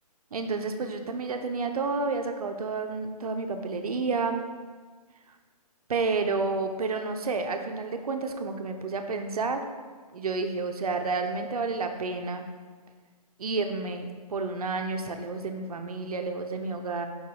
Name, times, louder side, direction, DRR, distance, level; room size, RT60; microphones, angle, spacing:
voice 1, 0.3-4.4 5.9-9.6 10.1-12.4 13.4-17.1, right 4 dB, 65° right, 6 dB, 0.8 m, -30 dB
4.9 x 4.7 x 4.8 m, 1.5 s
figure-of-eight pair, 145°, 20 cm